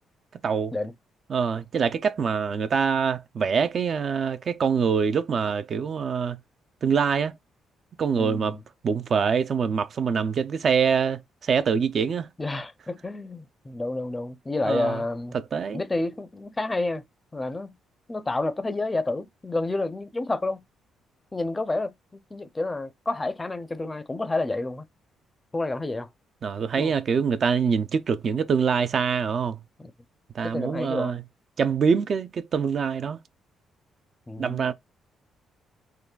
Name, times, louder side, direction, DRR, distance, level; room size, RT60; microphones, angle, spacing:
voice 1, 0.4-0.7 1.3-6.4 6.8-7.3 8.0-8.6 8.8-12.3 14.6-15.0 15.3-15.8 26.4-29.6 30.3-31.2 31.6-33.2 34.4-34.7, right 6 dB, 50° right, 0.4 m, -24 dB
voice 2, 8.1-8.6 12.4-15.4 15.7-17.0 17.3-17.8 18.1-20.6 21.3-24.9 25.5-26.1 26.8-26.9 29.8-29.9 30.4-31.1 34.3-34.7, left 2 dB, 20° left, 0.4 m, -29 dB
3.7 x 2.2 x 2.3 m
cardioid pair, 90°, 0 cm